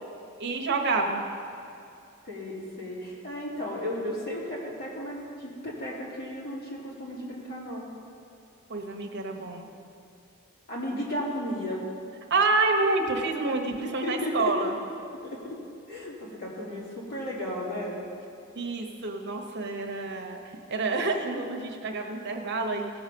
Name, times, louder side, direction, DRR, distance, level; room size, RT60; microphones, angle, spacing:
voice 1, 0.4-1.2 8.7-9.7 12.3-14.7 18.5-20.4 20.7-22.9, right 3 dB, 55° right, 3 dB, 1.1 m, -28 dB
voice 2, 2.2-7.9 10.7-11.8 13.8-14.7 15.3-15.6 15.9-18.0, left 1 dB, 50° left, -5 dB, 3.0 m, -34 dB
17.0 x 7.1 x 5.3 m, 2.6 s
head